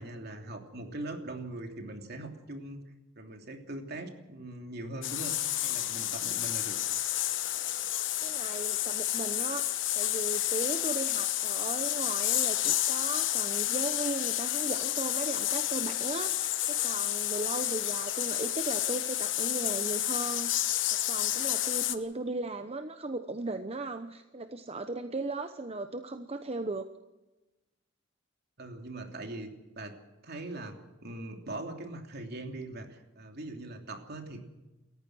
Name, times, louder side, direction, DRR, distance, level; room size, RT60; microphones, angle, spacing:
voice 1, 0.0-2.8 3.2-5.4 5.6-6.8 28.6-29.5 29.8-30.0 30.2-34.4, right 2 dB, 55° right, 4 dB, 3.1 m, -41 dB
sound 1, 5.0-22.0, left 13 dB, 70° left, 1.2 m, -30 dB
voice 2, 8.2-20.6 21.1-26.9, right 2 dB, 30° right, 8 dB, 0.9 m, -37 dB
28.5 x 15.0 x 6.2 m, 1.1 s
head